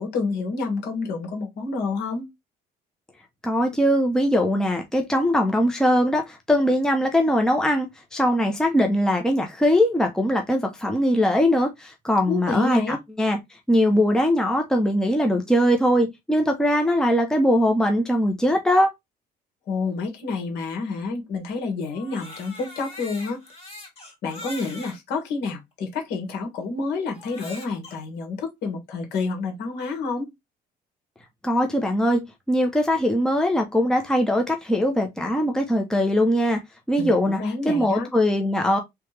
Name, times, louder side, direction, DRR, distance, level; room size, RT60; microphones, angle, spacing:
voice 1, 0.0-2.3 12.2-13.0 19.7-23.4 24.2-30.3 37.0-38.1, left 4 dB, 80° left, 1.7 m, -29 dB
voice 2, 3.4-13.4 13.7-18.9 31.4-36.6 36.9-38.8, equal, 5° left, 0.8 m, -21 dB
Crying sobbing, 21.9-25.0 25.7-25.8 27.1-28.0, left 2 dB, 35° left, 2.8 m, -41 dB
3.4 x 3.2 x 3.2 m
cardioid pair, 110°, 17 cm